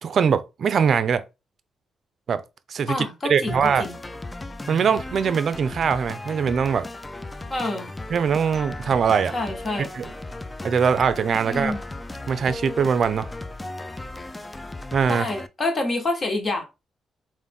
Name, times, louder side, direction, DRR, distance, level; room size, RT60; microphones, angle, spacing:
voice 1, 0.0-1.2 2.3-2.4 2.7-3.8 4.7-6.9 8.1-9.3 9.9-10.1 10.6-11.7 12.3-13.3 14.9-15.3, right 6 dB, 60° right, 0.4 m, -22 dB
voice 2, 2.9-3.9 7.5-7.9 9.3-9.9 11.4-11.8 15.1-16.6, left 2 dB, 40° left, 1.3 m, -27 dB
sound 1, 3.5-15.5, left 2 dB, 20° left, 0.4 m, -36 dB
3.6 x 2.5 x 3.5 m
supercardioid pair, 55°, 0 cm